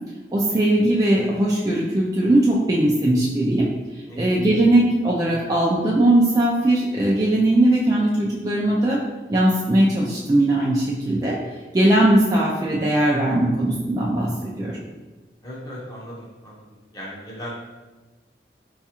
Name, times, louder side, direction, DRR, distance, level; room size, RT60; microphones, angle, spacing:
voice 1, 0.3-3.7 4.2-9.0 9.3-11.3 11.7-14.8, right 1 dB, 20° right, -5 dB, 0.3 m, -19 dB
voice 2, 15.4-16.7 16.9-17.5, equal, 20° left, -5 dB, 0.7 m, -37 dB
4.0 x 2.3 x 2.8 m, 1.3 s
head